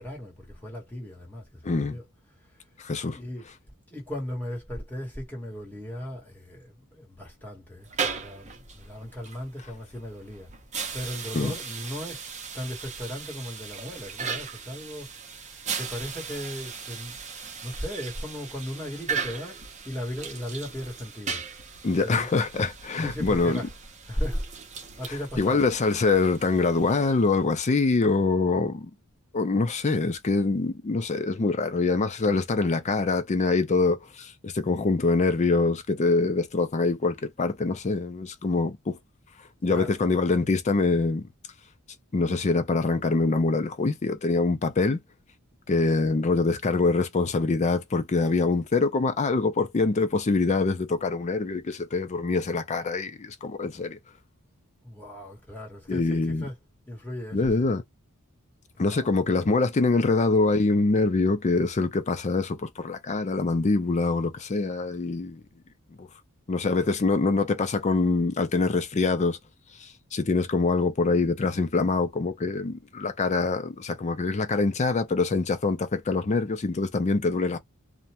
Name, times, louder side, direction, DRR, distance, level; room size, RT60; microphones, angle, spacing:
voice 1, 0.0-2.0 3.1-3.5 3.9-10.5 10.9-12.3 12.5-21.4 22.0-22.3 23.0-23.7 24.1-24.5 24.7-25.6 39.7-40.0 54.8-56.5 56.9-57.7 58.8-59.1 66.6-66.9, equal, 10° left, 1.3 m, -37 dB
voice 2, 1.6-2.0 2.8-3.2 11.3-11.5 21.8-23.6 25.1-28.9 29.3-39.0 39.6-41.3 42.1-45.0 45.7-54.0 55.9-56.4 57.3-57.8 58.8-65.4 66.0-66.1 66.5-69.4 69.8-77.6, left 3 dB, 30° left, 0.4 m, -24 dB
sound 1, 7.8-27.4, right 6 dB, 30° right, 0.7 m, -38 dB
2.5 x 2.2 x 2.8 m
head